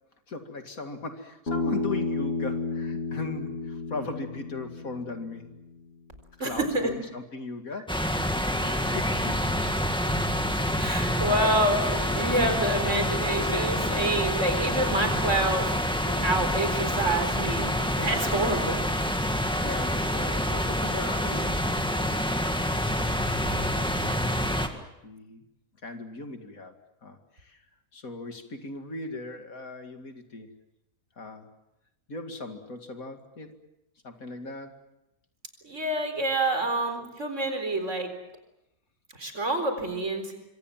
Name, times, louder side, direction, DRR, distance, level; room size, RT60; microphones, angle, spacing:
voice 1, 0.3-5.5 6.4-8.2 8.6-9.6 19.3-22.7 23.5-25.5 25.8-26.8 27.0-27.6 27.9-30.5 31.2-31.5 32.1-33.6 34.0-34.8, left 3 dB, 70° left, 5 dB, 2.7 m, -39 dB
Bass guitar, 1.5-5.7, left 3 dB, 45° left, 3.9 m, -32 dB
voice 2, 6.4-6.9 8.6-8.8 10.8-15.7 16.2-18.8 35.6-38.1 39.1-40.3, right 1 dB, 55° right, 7 dB, 4.6 m, -27 dB
Stream in the woods, 7.9-24.7, equal, 5° left, 1.9 m, -27 dB
sound 1, 11.4-14.4 16.0-17.5, left 3 dB, 85° left, 4.5 m, -42 dB
25.5 x 25.5 x 7.4 m, 0.88 s
omnidirectional pair, 1.6 m